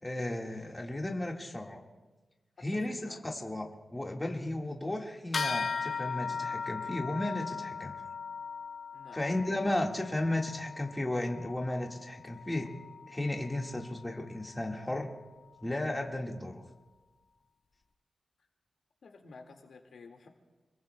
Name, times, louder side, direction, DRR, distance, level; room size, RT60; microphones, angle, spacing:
voice 1, 0.0-1.8 2.6-7.9 9.1-12.7 13.1-15.1 15.6-16.6, left 1 dB, 15° left, 0 dB, 1.7 m, -34 dB
voice 2, 2.6-3.2 8.9-9.3 9.6-9.7 19.0-20.3, left 4 dB, 75° left, 3 dB, 1.9 m, -52 dB
sound 1, 5.3-15.1, left 5 dB, 55° left, 0.7 m, -39 dB
28.5 x 21.5 x 2.2 m, 1.2 s
wide cardioid pair, 120°, 0 cm